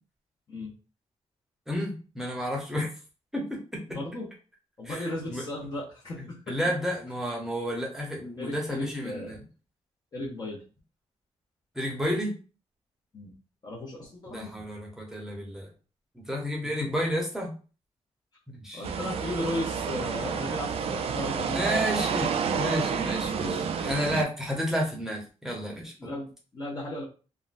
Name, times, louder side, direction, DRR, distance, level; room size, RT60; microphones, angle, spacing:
voice 1, 1.7-2.9 3.3-3.8 4.8-5.4 6.5-9.4 11.7-12.3 14.3-15.7 16.1-17.5 18.5-18.8 21.5-23.5 23.8-25.9, equal, 5° right, -1 dB, 0.8 m, -31 dB
voice 2, 3.9-4.3 4.8-6.6 8.4-9.4 10.1-10.6 13.1-13.3 13.6-14.5 16.8-16.9 18.7-21.8 22.5-22.6 23.3-23.6 26.0-27.0, left 1 dB, 35° left, -7 dB, 0.8 m, -36 dB
sound 1, 18.8-24.2, right 6 dB, 60° right, 0.4 m, -29 dB
3.6 x 2.2 x 2.5 m, 0.36 s
wide cardioid pair, 155°, 11 cm